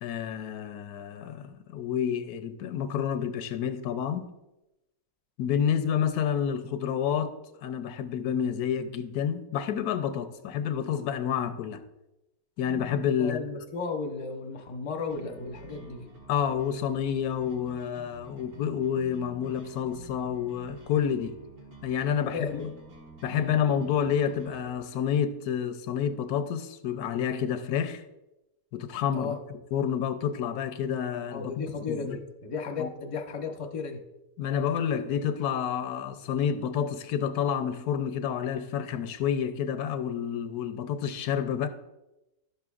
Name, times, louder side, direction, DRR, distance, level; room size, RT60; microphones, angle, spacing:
voice 1, 0.0-4.3 5.4-7.3 7.6-11.8 12.6-13.4 16.3-21.3 21.8-22.7 23.2-28.0 28.7-31.5 31.9-32.2 32.8-32.9 34.4-41.7, left 8 dB, 85° left, 1.1 m, -29 dB
voice 2, 13.2-16.1 22.2-22.7 23.3-23.5 29.1-29.4 31.3-34.0, left 4 dB, 30° left, 0.6 m, -34 dB
sound 1, 15.1-24.7, right 1 dB, 75° right, 2.0 m, -49 dB
11.5 x 6.8 x 2.4 m
omnidirectional pair, 1.6 m